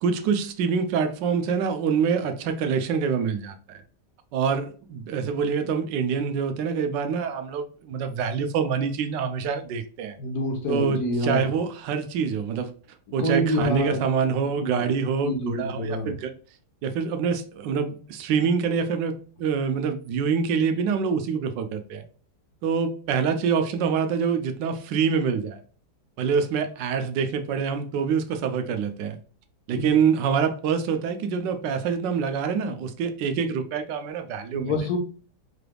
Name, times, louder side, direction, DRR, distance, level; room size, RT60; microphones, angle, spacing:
voice 1, 0.0-3.8 4.3-10.2 10.7-12.7 13.1-16.3 16.8-22.0 22.6-25.6 26.2-29.2 29.7-34.7, right 6 dB, 90° right, 1.3 m, -26 dB
voice 2, 10.2-11.5 13.2-14.0 14.6-14.8 15.2-16.1 29.7-29.9 34.5-35.0, equal, 60° left, 1.4 m, -27 dB
4.8 x 3.4 x 2.2 m
omnidirectional pair, 1.9 m